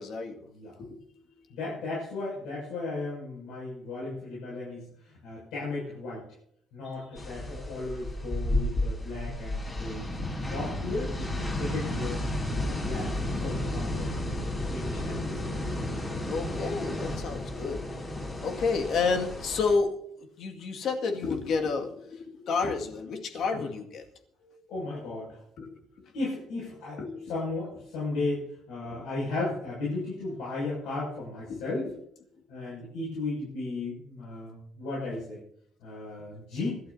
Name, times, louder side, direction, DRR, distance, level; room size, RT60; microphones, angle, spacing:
voice 1, 0.0-0.5 0.8-1.5 6.8-7.3 16.3-17.9 18.4-24.0 25.6-26.1 27.0-27.3 28.9-29.0 31.5-31.9 32.3-32.6, left 4 dB, 60° left, 3 dB, 2.1 m, -31 dB
voice 2, 1.5-6.2 6.7-10.1 10.5-12.2 12.5-15.6 24.4-25.4 26.1-31.9 32.5-35.4 35.8-36.8, left 2 dB, 90° left, -7 dB, 6.9 m, -35 dB
sound 1, 7.2-19.8, left 1 dB, 25° left, 5.6 m, -32 dB
25.5 x 12.5 x 2.8 m, 0.70 s
cardioid pair, 125°, 0 cm